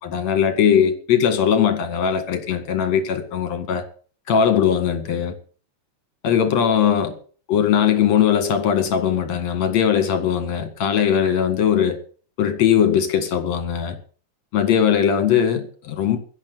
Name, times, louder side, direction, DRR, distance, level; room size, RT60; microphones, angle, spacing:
voice 1, 0.0-3.8 4.3-5.3 6.2-7.1 7.5-12.0 12.4-14.0 14.5-16.2, left 8 dB, 60° left, 3.0 m, -19 dB
10.5 x 8.9 x 9.4 m
omnidirectional pair, 3.6 m